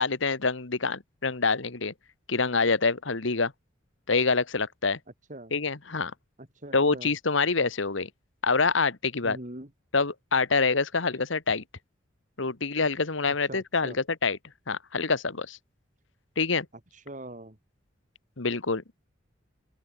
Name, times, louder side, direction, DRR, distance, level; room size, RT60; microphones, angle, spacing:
voice 1, 0.0-1.9 2.3-3.5 4.1-5.0 5.5-6.1 6.7-8.1 8.4-9.4 9.9-11.6 12.4-14.4 14.7-15.6 16.4-16.7 18.4-18.8, left 4 dB, 75° left, 1.5 m, -26 dB
voice 2, 6.4-7.1 9.2-9.7 13.5-14.0 16.9-17.6, right 1 dB, 40° right, 2.8 m, -42 dB
open air
head